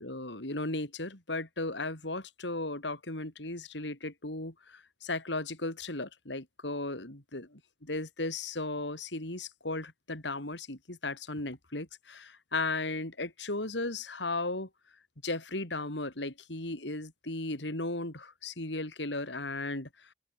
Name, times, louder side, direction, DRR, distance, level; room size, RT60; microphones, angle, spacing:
voice 1, 0.0-7.5 7.8-14.7 15.2-19.9, left 2 dB, 80° left, 4.6 m, -36 dB
open air
head